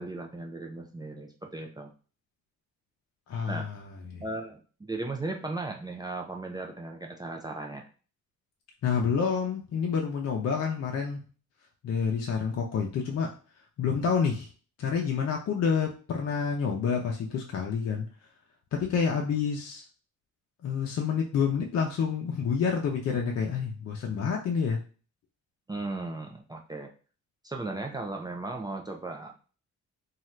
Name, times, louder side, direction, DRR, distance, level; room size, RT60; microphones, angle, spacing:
voice 1, 0.0-1.9 3.5-3.7 4.2-7.9 25.7-26.9 27.4-29.5, right 2 dB, 15° right, 2 dB, 0.4 m, -36 dB
voice 2, 3.3-3.8 4.1-4.2 8.8-11.2 11.8-13.3 13.8-14.5 14.8-18.1 18.7-19.8 20.6-24.8, left 6 dB, 55° left, 0 dB, 0.6 m, -28 dB
2.7 x 2.4 x 3.2 m, 0.37 s
cardioid pair, 90°, 30 cm